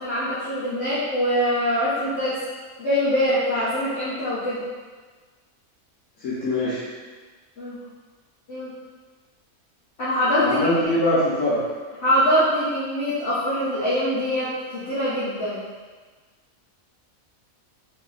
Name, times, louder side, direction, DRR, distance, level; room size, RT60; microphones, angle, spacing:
voice 1, 0.0-2.4 2.8-4.6 7.6-7.8 8.5-8.7 10.0-10.9 12.0-15.6, equal, 50° left, -14 dB, 1.3 m, -23 dB
voice 2, 6.2-6.8 10.4-11.6, left 1 dB, 75° left, -11 dB, 1.4 m, -22 dB
3.3 x 2.9 x 3.9 m, 1.4 s
omnidirectional pair, 1.5 m